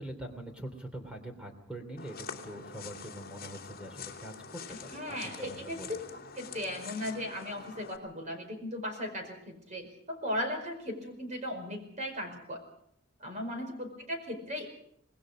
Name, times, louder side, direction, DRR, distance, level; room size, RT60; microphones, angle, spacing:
voice 1, 0.0-5.9, right 1 dB, 5° right, 5 dB, 3.1 m, -44 dB
Dry Footsteps, 2.0-8.0, left 5 dB, 45° left, 2.6 m, -45 dB
voice 2, 4.7-6.0 6.3-12.6 13.2-14.7, left 1 dB, 35° right, 5 dB, 5.0 m, -37 dB
26.0 x 20.0 x 5.0 m, 0.70 s
head